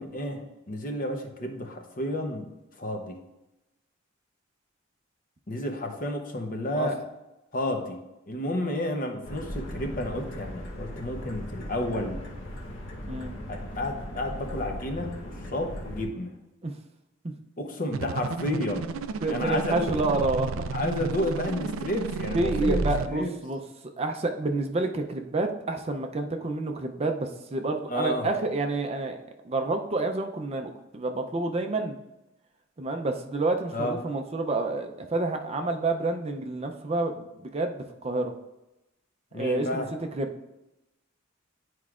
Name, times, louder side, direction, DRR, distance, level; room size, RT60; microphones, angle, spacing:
voice 1, 0.0-2.5 2.8-3.2 5.5-7.0 7.5-8.0 8.3-12.2 13.5-16.3 17.6-19.0 19.3-20.0 20.7-23.3 27.9-28.3 33.7-34.0 39.3-39.9, left 1 dB, 45° left, 4 dB, 0.8 m, -31 dB
sound 1, 9.2-16.0, equal, 60° left, 1.1 m, -38 dB
sound 2, 17.9-23.1, right 4 dB, 90° right, 0.4 m, -32 dB
voice 2, 19.2-20.6 22.3-23.6 24.0-29.2 29.4-32.0 32.8-38.3 39.4-39.8 40.1-40.3, right 2 dB, 30° right, 4 dB, 0.5 m, -29 dB
10.5 x 4.6 x 2.4 m, 0.96 s
head